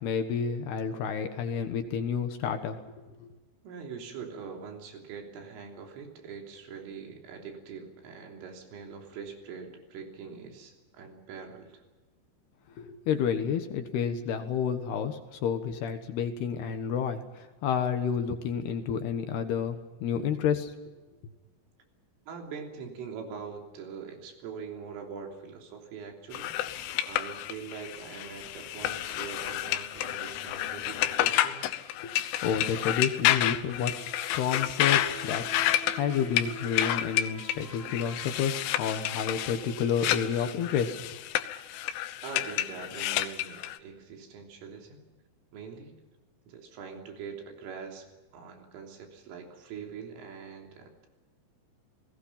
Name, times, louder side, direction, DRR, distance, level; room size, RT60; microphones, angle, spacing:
voice 1, 0.0-2.8 3.2-3.3 12.8-20.7 32.0-33.9 34.3-41.0, left 7 dB, 65° left, 7 dB, 3.0 m, -30 dB
voice 2, 3.6-11.8 22.3-31.7 42.2-45.1 45.5-46.0 46.5-51.1, right 6 dB, 85° right, 2 dB, 5.8 m, -43 dB
sound 1, 26.3-43.8, left 13 dB, 85° left, 3.5 m, -30 dB
sound 2, 33.8-40.4, right 1 dB, 50° right, 6.6 m, -47 dB
30.0 x 20.0 x 5.8 m, 1.2 s
omnidirectional pair, 5.6 m